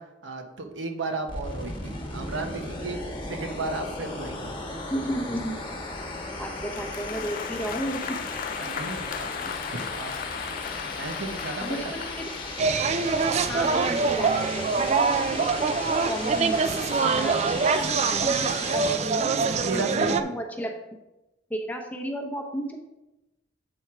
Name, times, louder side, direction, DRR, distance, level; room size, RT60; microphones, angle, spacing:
voice 1, 0.0-4.6 8.6-9.3 9.7-10.1 10.5-11.9 19.5-20.3, right 2 dB, 80° right, 4 dB, 1.0 m, -34 dB
sound 1, 1.3-19.0, left 2 dB, 25° left, 1.2 m, -36 dB
voice 2, 4.9-5.5 6.4-8.1 11.6-12.2 13.5-16.6 17.2-19.9 20.2-20.7 21.5-22.8, equal, 10° left, 2 dB, 0.8 m, -33 dB
Applause, 6.6-12.6, left 8 dB, 45° left, 0.3 m, -37 dB
sound 2, 12.6-20.2, right 4 dB, 35° right, 0.3 m, -24 dB
7.8 x 4.4 x 4.7 m, 0.97 s
head